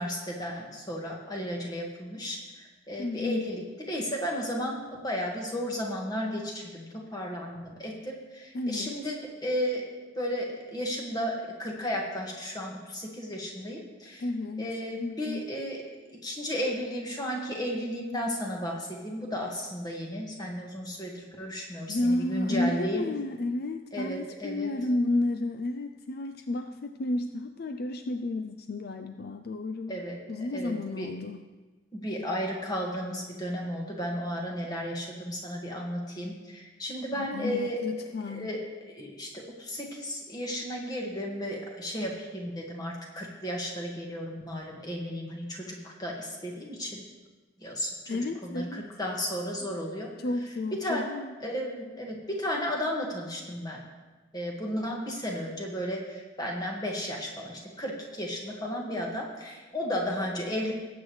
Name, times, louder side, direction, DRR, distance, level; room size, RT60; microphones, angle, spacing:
voice 1, 0.0-9.8 10.2-14.2 14.6-15.8 16.2-23.1 23.9-24.7 29.9-31.1 31.9-37.8 38.3-47.0 47.6-47.9 48.4-50.1 50.7-51.1 51.4-53.8 54.3-60.7, equal, 20° left, -1 dB, 1.8 m, -34 dB
voice 2, 3.0-3.6 8.5-9.1 14.2-14.7 15.0-15.5 21.9-30.0 30.3-31.5 37.1-38.6 48.1-48.9 50.2-51.3, left 2 dB, 55° left, 7 dB, 0.4 m, -32 dB
19.0 x 8.1 x 3.2 m, 1.3 s
head